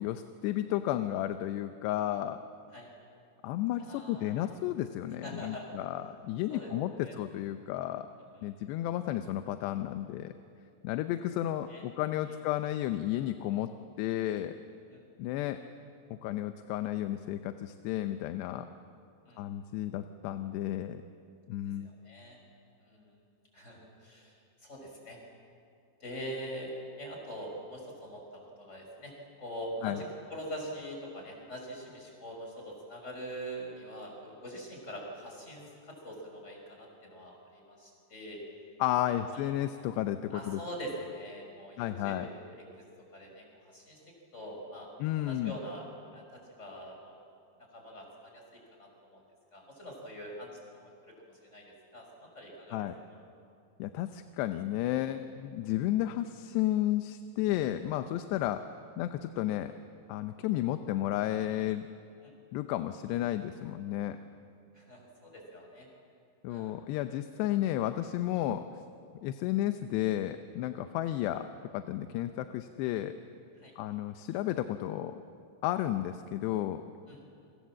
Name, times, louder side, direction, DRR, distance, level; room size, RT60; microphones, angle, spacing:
voice 1, 0.0-2.4 3.4-8.1 8.4-10.3 10.8-13.7 14.0-14.5 15.2-15.6 16.2-18.7 19.4-21.0 21.5-21.9 29.8-30.0 38.8-40.6 41.8-42.3 45.0-45.5 52.7-52.9 53.8-58.6 59.0-59.7 60.1-61.9 62.5-64.2 66.4-68.7 69.2-71.5 71.7-73.1 73.8-75.2 75.6-76.8, left 13 dB, 85° left, 9 dB, 2.9 m, -32 dB
voice 2, 3.8-4.4 5.2-5.7 6.5-6.7 7.0-7.1 8.3-8.4 11.7-11.8 14.9-15.1 19.3-19.4 21.8-22.4 22.8-23.2 23.5-25.2 26.0-29.1 29.4-30.0 30.3-38.4 39.3-39.4 40.3-42.3 42.6-42.8 43.1-44.0 44.3-44.9 45.2-47.2 47.7-49.2 49.5-53.2 62.2-62.3 64.7-65.9 66.5-66.7 73.6-73.7 77.1-77.3, equal, 15° left, 1 dB, 5.8 m, -44 dB
29.5 x 24.0 x 7.5 m, 2.5 s
omnidirectional pair, 4.8 m